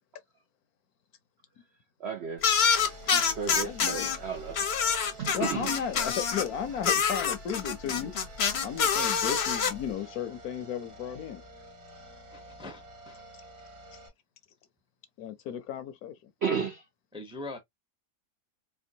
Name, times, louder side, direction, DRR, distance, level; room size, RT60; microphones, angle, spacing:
voice 1, 2.0-2.5 3.1-4.6 5.2-5.7 16.4-16.8, right 6 dB, 65° right, 0.6 m, -33 dB
sound 1, 2.4-4.2 4.5-6.5 6.8-9.7, left 6 dB, 50° left, 0.9 m, -26 dB
sound 2, 2.8-14.1, right 2 dB, 50° right, 1.6 m, -50 dB
voice 2, 3.6-4.1 4.6-4.7 5.0-8.1 8.6-11.4 13.9-14.0 15.2-16.3, left 8 dB, 70° left, 1.1 m, -35 dB
voice 3, 12.3-13.2 17.1-17.6, left 2 dB, 5° right, 0.5 m, -42 dB
4.4 x 2.2 x 2.7 m
omnidirectional pair, 1.7 m